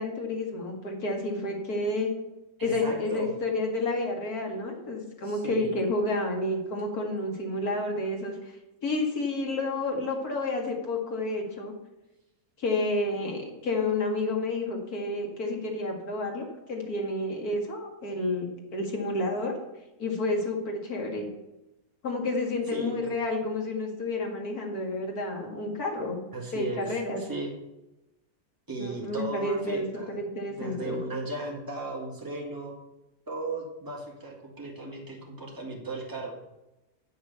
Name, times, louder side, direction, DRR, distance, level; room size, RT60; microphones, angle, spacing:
voice 1, 0.0-2.1 2.6-8.4 8.8-11.7 12.6-18.5 18.7-19.5 20.0-21.3 22.0-26.2 26.5-27.2 28.8-29.9 30.2-31.0, left 2 dB, 80° left, 1 dB, 2.5 m, -30 dB
voice 2, 2.6-3.3 5.2-5.7 22.7-23.1 26.3-27.5 28.7-30.2 30.6-32.7 33.3-36.3, right 2 dB, 15° right, -2 dB, 2.0 m, -36 dB
8.1 x 6.4 x 6.9 m, 0.96 s
omnidirectional pair, 1.6 m